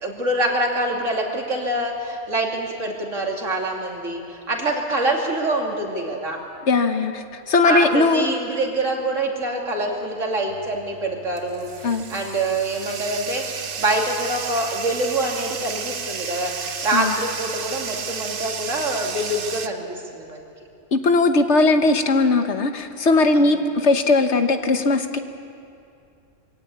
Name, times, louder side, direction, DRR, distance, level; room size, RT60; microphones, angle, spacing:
voice 1, 0.0-6.4 7.6-20.5 23.3-23.6, right 1 dB, 75° right, 0 dB, 3.1 m, -25 dB
voice 2, 6.7-8.4 11.8-12.1 16.9-17.1 20.9-25.2, left 3 dB, 60° left, 7 dB, 1.4 m, -19 dB
Bathtub (filling or washing), 10.5-19.7, right 6 dB, 50° right, 1.0 m, -32 dB
24.0 x 17.0 x 8.5 m, 2.5 s
omnidirectional pair, 1.3 m